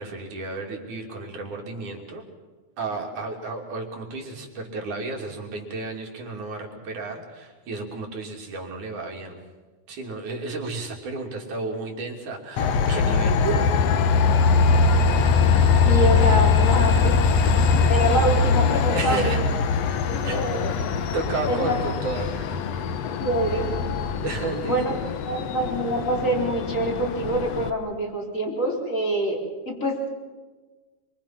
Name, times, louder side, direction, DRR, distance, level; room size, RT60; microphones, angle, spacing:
voice 1, 0.0-2.2 2.8-9.4 9.9-13.5 18.9-19.4 20.2-20.5 21.1-22.6 24.2-24.8, right 3 dB, 75° right, 1 dB, 4.4 m, -32 dB
Train, 12.6-27.7, left 5 dB, 65° left, 2.0 m, -22 dB
voice 2, 15.6-17.2 17.9-19.4 20.1-20.7 21.5-21.8 23.1-23.7 24.6-24.9 25.3-29.4 29.7-30.1, right 1 dB, 25° left, 0 dB, 4.5 m, -25 dB
26.5 x 24.5 x 5.9 m, 1.3 s
omnidirectional pair, 3.5 m